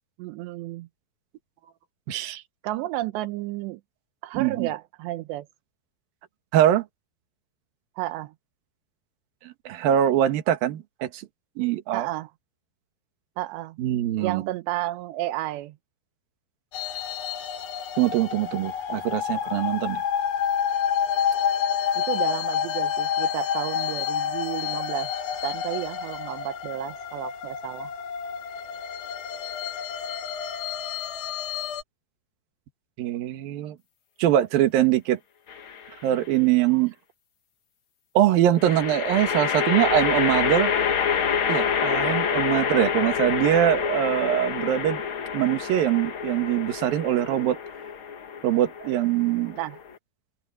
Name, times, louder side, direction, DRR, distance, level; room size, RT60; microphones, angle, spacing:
voice 1, 0.2-0.9 2.6-3.8 4.2-5.5 8.0-8.3 11.9-12.3 13.4-13.8 14.2-15.8 22.0-25.1 25.4-27.9 49.6-49.8, right 16 dB, 85° right, 3.0 m, -32 dB
voice 2, 2.1-2.4 4.3-4.7 6.5-6.8 9.4-11.2 11.6-12.1 13.8-14.4 18.0-20.0 33.0-33.8 34.2-35.2 36.0-36.9 38.1-40.7 41.5-45.0 45.3-47.6 48.4-49.6, right 12 dB, 60° right, 3.1 m, -23 dB
sound 1, 16.7-31.8, left 8 dB, 60° left, 4.6 m, -29 dB
sound 2, 35.5-36.1 38.6-49.9, left 7 dB, 85° left, 1.1 m, -27 dB
omnidirectional pair, 5.1 m